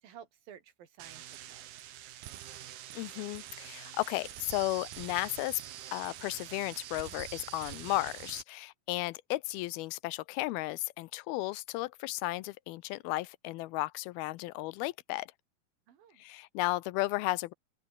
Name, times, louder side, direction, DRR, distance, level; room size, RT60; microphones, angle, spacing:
voice 1, 0.0-1.7 15.9-16.2, right 9 dB, 70° right, 4.1 m, -53 dB
sound 1, 1.0-8.4, right 12 dB, 85° right, 3.7 m, -45 dB
voice 2, 3.0-5.6 5.9-15.3 16.2-17.5, left 19 dB, 85° left, 2.5 m, -34 dB
omnidirectional pair, 4.4 m